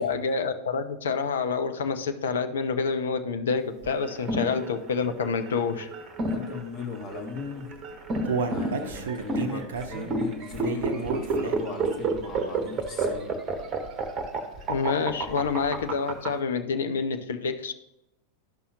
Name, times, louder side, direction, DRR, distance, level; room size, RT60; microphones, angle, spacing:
voice 1, 0.0-5.9 14.7-17.7, left 5 dB, 65° left, 8 dB, 0.6 m, -28 dB
sound 1, 3.8-16.3, right 3 dB, 30° right, 1.0 m, -30 dB
voice 2, 6.2-7.7 8.4-13.4, left 4 dB, 35° left, 1 dB, 1.9 m, -38 dB
Human voice, 7.6-11.8 12.2-12.3 12.8-12.9, right 5 dB, 60° right, 0.6 m, -32 dB
12.0 x 5.5 x 2.9 m, 0.88 s
figure-of-eight pair, 90°, 0 cm